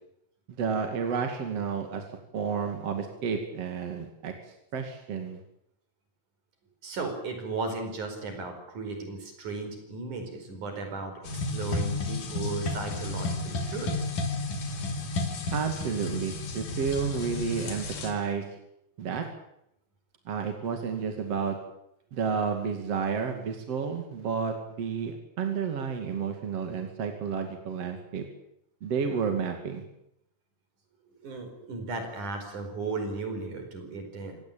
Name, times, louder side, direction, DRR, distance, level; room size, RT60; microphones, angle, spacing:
voice 1, 0.6-2.0 2.3-4.3 4.7-5.4 15.5-18.4 19.0-19.2 20.3-21.6 22.1-28.3 28.8-29.8, right 6 dB, 50° right, 4 dB, 3.3 m, -31 dB
voice 2, 6.8-14.1 31.2-34.4, right 3 dB, 70° right, 6 dB, 6.4 m, -36 dB
sound 1, 11.3-18.1, left 3 dB, 85° left, 4.5 m, -32 dB
26.5 x 18.0 x 9.0 m, 0.79 s
omnidirectional pair, 3.6 m